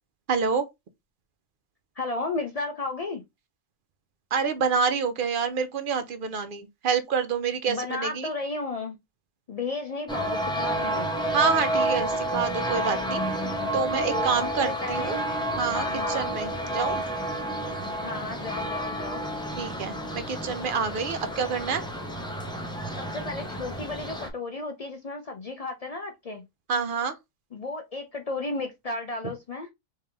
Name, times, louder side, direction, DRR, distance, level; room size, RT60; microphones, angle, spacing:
voice 1, 0.3-0.7 4.3-8.3 11.3-13.2 13.5-15.2 15.6-17.0 19.5-21.8 26.7-27.2, right 5 dB, 55° right, 0.6 m, -27 dB
voice 2, 2.0-3.2 7.6-9.0 9.5-11.1 14.0-14.3 14.6-15.2 15.7-16.4 18.0-19.3 22.9-26.4 27.5-29.7, left 3 dB, 60° left, 0.4 m, -33 dB
sound 1, 10.1-24.3, right 1 dB, 5° left, 0.5 m, -30 dB
3.6 x 3.3 x 2.8 m
omnidirectional pair, 1.3 m